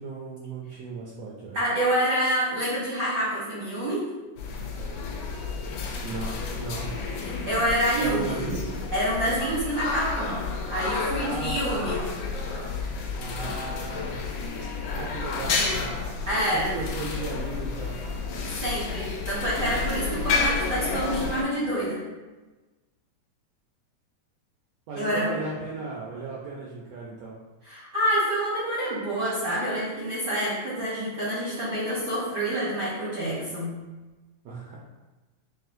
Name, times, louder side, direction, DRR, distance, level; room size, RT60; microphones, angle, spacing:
voice 1, 0.0-1.6 6.0-6.9 8.0-8.7 11.2-11.9 13.2-14.1 14.9-15.9 16.5-18.0 24.9-27.4 34.4-34.8, right 3 dB, 80° right, -4 dB, 1.4 m, -35 dB
voice 2, 1.5-4.0 7.2-8.4 8.9-10.4 10.7-12.0 16.3-16.7 18.6-22.0 25.0-25.4 27.6-33.7, equal, 60° right, -8 dB, 1.1 m, -27 dB
sound 1, 4.4-21.4, left 4 dB, 75° left, 1.5 m, -31 dB
6.1 x 2.4 x 2.6 m, 1.2 s
omnidirectional pair, 3.3 m